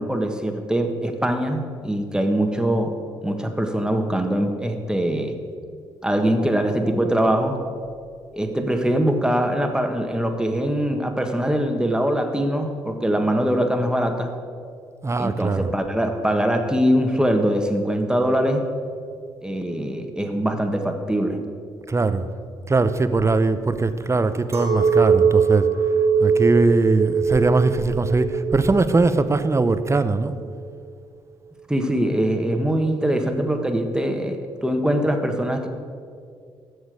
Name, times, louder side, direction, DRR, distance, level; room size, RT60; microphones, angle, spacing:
voice 1, 0.0-2.9 3.2-5.3 6.0-7.6 8.3-14.3 15.2-18.6 19.4-21.4 30.4-30.5 31.7-35.7, equal, 5° right, 5 dB, 1.5 m, -22 dB
voice 2, 15.0-15.7 21.9-22.3 22.7-25.7 26.2-30.3, right 3 dB, 25° right, 12 dB, 0.7 m, -20 dB
Chink clink, 24.5-30.0, right 6 dB, 55° right, 1.8 m, -21 dB
15.0 x 6.4 x 5.0 m, 2.2 s
hypercardioid pair, 45°, 12 cm